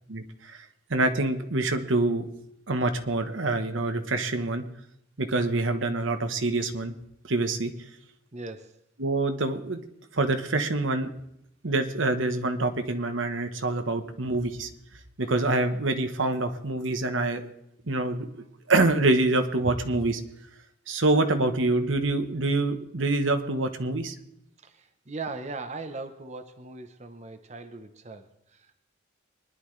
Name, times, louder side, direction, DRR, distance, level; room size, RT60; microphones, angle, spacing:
voice 1, 0.1-0.6 0.9-2.3 2.7-4.6 5.2-6.9 7.3-7.7 9.0-9.8 10.1-11.1 11.6-14.7 15.2-17.5 17.9-18.3 18.7-20.2 20.9-24.1, right 2 dB, 90° right, 7 dB, 1.2 m, -26 dB
voice 2, 8.3-8.8 24.6-28.7, right 3 dB, 35° right, 8 dB, 0.9 m, -39 dB
23.5 x 11.0 x 3.3 m, 0.77 s
head